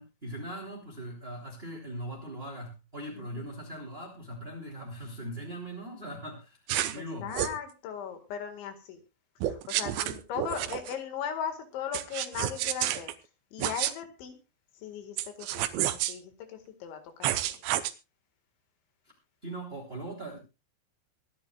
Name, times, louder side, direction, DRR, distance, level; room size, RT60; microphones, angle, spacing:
voice 1, 0.0-6.6 6.8-7.3 19.4-20.4, right 1 dB, 15° right, -1 dB, 2.4 m, -40 dB
sound 1, 6.7-7.0 7.3-7.6 9.4-10.9 11.9-13.1 13.6-13.9 15.2-16.1 17.2-17.9, right 13 dB, 80° right, 3.1 m, -30 dB
voice 2, 7.0-9.0 9.4-13.1 13.5-14.4 14.8-17.6, left 8 dB, 75° left, 7 dB, 4.1 m, -38 dB
24.5 x 10.5 x 2.4 m, 0.29 s
omnidirectional pair, 5.5 m